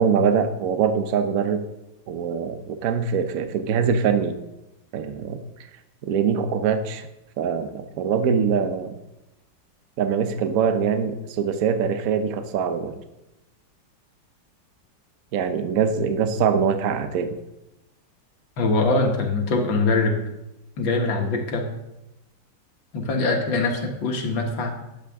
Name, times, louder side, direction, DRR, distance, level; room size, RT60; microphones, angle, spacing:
voice 1, 0.0-1.6 2.1-4.4 4.9-5.4 6.0-7.1 7.4-9.0 10.0-12.9 15.3-17.4, right 6 dB, 60° right, 8 dB, 1.0 m, -23 dB
voice 2, 18.6-20.2 20.8-21.7 22.9-24.8, left 3 dB, 80° left, 2 dB, 2.0 m, -23 dB
10.5 x 7.3 x 3.5 m, 0.91 s
omnidirectional pair, 2.0 m